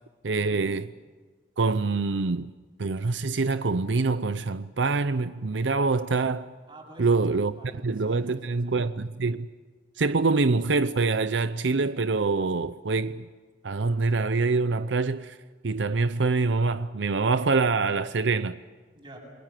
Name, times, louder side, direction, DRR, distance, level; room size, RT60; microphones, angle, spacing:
voice 1, 0.2-0.9 1.6-2.5 2.8-6.5 7.0-7.5 7.8-9.5 10.0-13.3 13.6-15.4 15.6-18.6, right 3 dB, 85° right, 0.7 m, -25 dB
voice 2, 6.7-9.1 18.9-19.2, right 1 dB, 30° right, 7.9 m, -48 dB
29.5 x 22.5 x 7.6 m
head